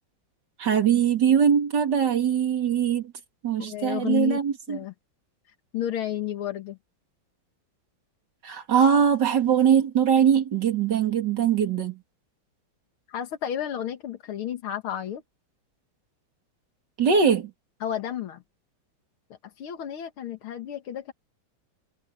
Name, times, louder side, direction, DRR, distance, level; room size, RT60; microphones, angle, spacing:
voice 1, 0.6-3.1 3.4-4.8 8.4-12.0 17.0-17.5, right 8 dB, 55° right, 2.9 m, -22 dB
voice 2, 3.6-4.4 4.7-4.9 5.5-6.8 13.1-15.2 17.8-18.4 19.4-21.1, left 11 dB, 85° left, 2.4 m, -32 dB
omnidirectional pair, 2.3 m